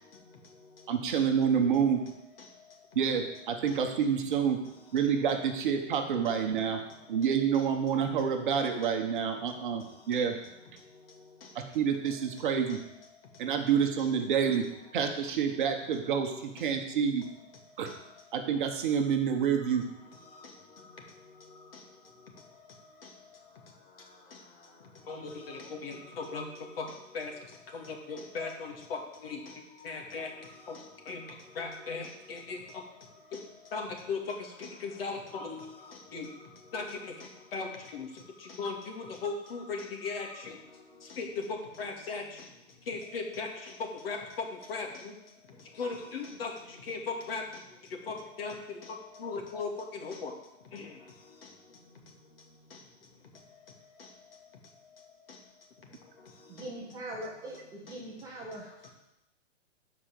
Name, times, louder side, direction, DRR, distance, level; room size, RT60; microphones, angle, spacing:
voice 1, 0.0-3.0 3.7-3.8 4.3-8.2 8.5-14.1 14.8-14.9 15.2-18.5 19.1-56.7 57.9-58.9, left 4 dB, 50° left, 1 dB, 2.6 m, -42 dB
voice 2, 0.9-2.0 2.9-4.6 4.9-6.8 7.1-10.4 11.5-12.8 13.4-14.7 14.9-17.2 17.8-17.9 18.3-19.8, right 7 dB, 40° right, 4 dB, 1.4 m, -28 dB
voice 3, 56.5-58.7, right 1 dB, 10° right, -4 dB, 1.1 m, -41 dB
12.5 x 5.3 x 7.9 m, 0.88 s
hypercardioid pair, 160°, 37 cm